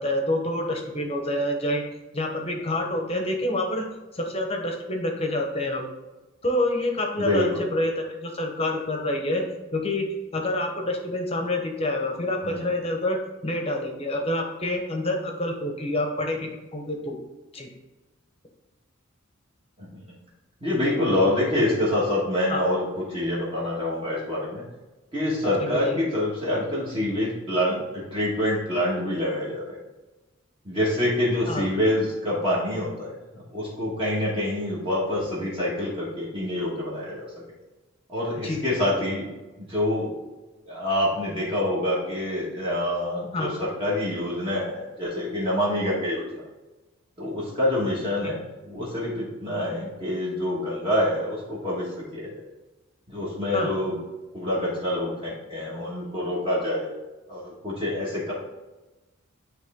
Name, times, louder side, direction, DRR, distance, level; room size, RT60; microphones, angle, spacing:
voice 1, 0.0-1.8 2.1-3.9 4.1-5.8 6.4-9.4 9.7-10.1 10.3-17.2 17.5-17.7 22.5-22.6 25.8-26.0 31.5-31.6 38.4-38.6 43.3-43.5 48.2-48.4 53.5-53.7, left 1 dB, 30° left, 2 dB, 0.9 m, -27 dB
voice 2, 7.2-7.6 12.4-12.7 19.8-20.1 20.6-24.6 25.1-29.8 30.6-33.1 33.5-37.3 38.1-39.3 39.6-40.1 40.6-46.4 47.2-52.4 53.1-53.9 54.3-56.9 57.3-58.3, left 1 dB, 25° right, -7 dB, 1.5 m, -26 dB
9.4 x 3.2 x 3.6 m, 1.1 s
head